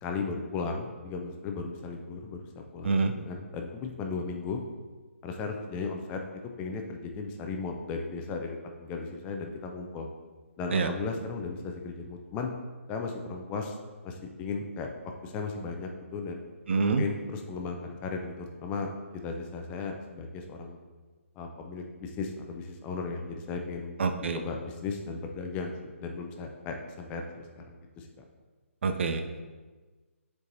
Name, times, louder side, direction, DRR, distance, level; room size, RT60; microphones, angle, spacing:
voice 1, 0.0-4.6 5.2-10.1 10.6-12.5 12.9-13.8 14.0-14.9 15.2-16.4 17.0-20.8 21.4-23.9 24.3-28.1, left 4 dB, 15° left, 3 dB, 0.5 m, -36 dB
voice 2, 16.7-17.0 24.0-24.4 28.8-29.2, right 4 dB, 55° right, 8 dB, 0.5 m, -26 dB
8.0 x 4.6 x 2.7 m, 1.3 s
figure-of-eight pair, 145°, 8 cm